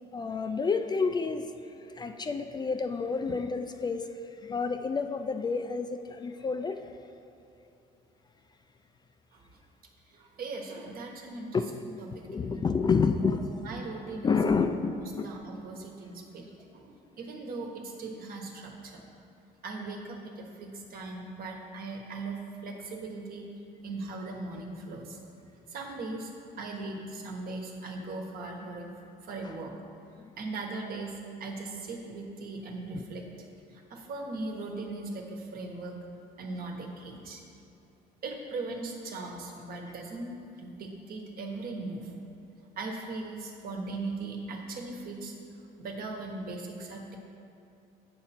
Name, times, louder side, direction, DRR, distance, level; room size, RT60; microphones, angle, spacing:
voice 1, 0.1-1.5 2.0-4.1 4.4-6.9 11.5-11.7 12.2-13.6 14.2-15.3 29.4-29.5 32.9-33.1, left 5 dB, 25° left, 7 dB, 0.3 m, -29 dB
voice 2, 10.1-11.6 12.3-12.6 13.2-13.3 13.6-14.4 14.9-19.0 19.6-23.5 23.8-25.2 25.7-26.3 26.6-28.9 29.2-29.7 30.4-33.2 33.9-36.0 36.4-37.4 38.2-42.1 42.8-45.3 45.8-47.2, right 3 dB, 60° right, 1 dB, 1.3 m, -39 dB
8.0 x 6.5 x 4.3 m, 2.8 s
cardioid pair, 110°, 17 cm